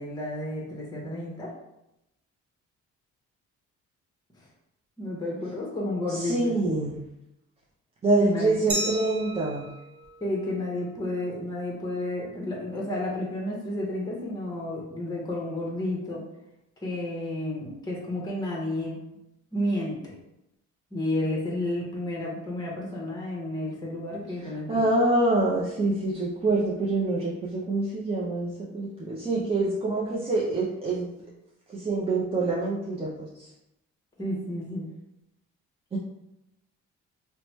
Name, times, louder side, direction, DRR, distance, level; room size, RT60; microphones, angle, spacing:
voice 1, 0.0-1.5 4.4-4.5 5.0-6.5 8.2-8.6 10.2-16.2 16.8-19.0 19.5-20.1 20.9-24.8 34.2-34.9, left 1 dB, 15° left, -3 dB, 0.8 m, -31 dB
voice 2, 6.1-6.9 8.0-9.7 24.7-31.1 31.7-33.5 35.9-36.0, right 2 dB, 20° right, -6 dB, 0.5 m, -26 dB
Glass, 8.7-11.4, right 1 dB, 65° right, 0.9 m, -36 dB
3.0 x 2.1 x 3.0 m, 0.88 s
cardioid pair, 90°, 30 cm